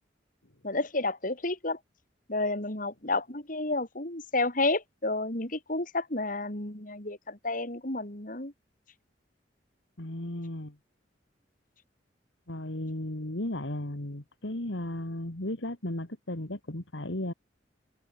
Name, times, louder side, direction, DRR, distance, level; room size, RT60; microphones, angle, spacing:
voice 1, 0.6-1.8 2.3-8.5, left 2 dB, 45° left, 4.3 m, -31 dB
voice 2, 10.0-10.7 12.5-17.3, left 1 dB, 80° left, 2.6 m, -35 dB
head